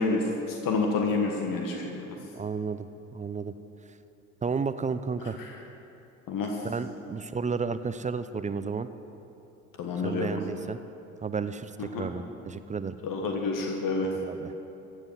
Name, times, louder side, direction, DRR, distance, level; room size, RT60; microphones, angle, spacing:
voice 1, 0.0-2.2 5.2-5.5 6.3-6.6 9.8-10.4 11.9-12.1 13.0-14.1, left 3 dB, 50° left, 2 dB, 1.5 m, -29 dB
voice 2, 2.3-3.5 4.4-5.4 6.6-8.9 10.0-10.8 11.2-13.0 14.2-14.5, right 5 dB, 20° right, 12 dB, 0.5 m, -32 dB
15.5 x 8.0 x 6.2 m, 2.9 s
figure-of-eight pair, 55°, 41 cm